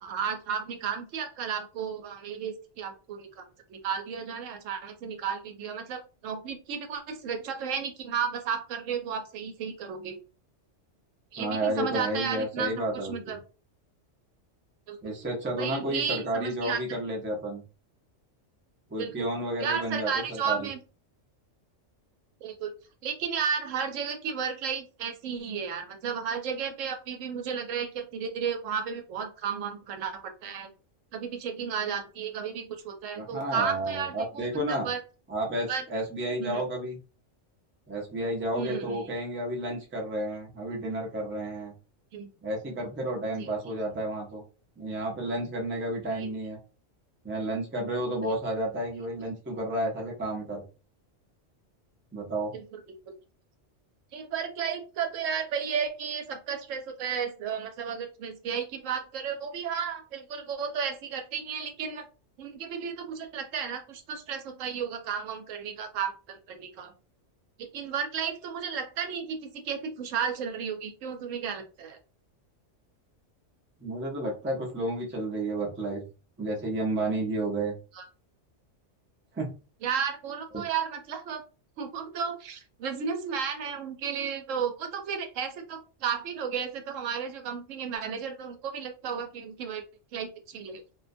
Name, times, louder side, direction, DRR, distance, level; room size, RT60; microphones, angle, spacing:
voice 1, 0.0-3.4 3.7-10.2 11.3-12.7 13.0-13.4 14.9-15.0 15.6-16.8 19.0-19.3 19.6-20.8 22.4-22.7 23.0-30.7 31.1-35.0 35.7-35.8 36.4-36.6 38.5-39.1 42.1-42.3 43.4-43.5 46.2-46.3 52.5-52.8 54.1-62.1 62.4-66.9 67.6-72.0 77.9-78.1 79.8-81.4 81.8-89.8 90.1-90.8, right 7 dB, 90° right, 6 dB, 1.0 m, -33 dB
voice 2, 11.4-13.4 15.0-17.6 18.9-20.7 33.2-34.9 35.3-37.0 37.9-41.7 42.4-44.4 44.8-46.6 47.2-50.6 52.1-52.5 73.8-76.0 76.4-77.7 79.3-79.5 80.5-80.6, right 1 dB, 15° right, -1 dB, 0.4 m, -31 dB
2.5 x 2.2 x 2.5 m, 0.33 s
omnidirectional pair, 1.3 m